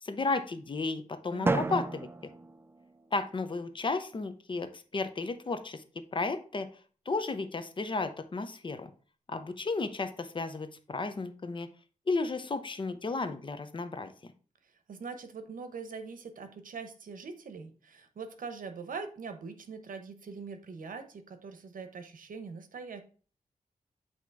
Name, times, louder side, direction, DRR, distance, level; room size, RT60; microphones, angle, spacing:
voice 1, 0.0-2.1 3.1-5.8 6.1-6.7 7.1-8.9 9.3-11.7 12.1-14.1, left 3 dB, 35° left, 9 dB, 0.7 m, -33 dB
voice 2, 1.3-1.9 14.6-23.0, right 5 dB, 80° right, 8 dB, 1.0 m, -43 dB
Drum, 1.5-3.4, right 3 dB, 15° right, 0.3 m, -33 dB
8.2 x 3.0 x 4.6 m, 0.39 s
wide cardioid pair, 140°, 14 cm